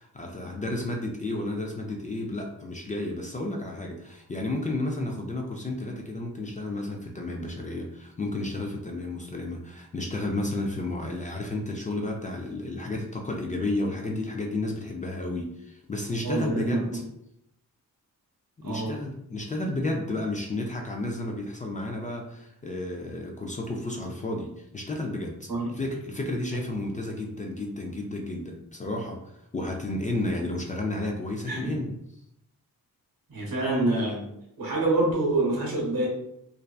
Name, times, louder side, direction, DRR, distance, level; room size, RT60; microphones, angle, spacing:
voice 1, 0.0-16.9 18.6-25.5 25.8-31.9, left 2 dB, 25° left, 1 dB, 0.3 m, -32 dB
voice 2, 16.2-16.8 18.6-18.9 25.5-25.7 31.4-31.8 33.3-34.3 34.6-36.1, right 2 dB, 75° right, -3 dB, 1.0 m, -26 dB
2.6 x 2.1 x 2.3 m, 0.78 s
cardioid pair, 70°, 36 cm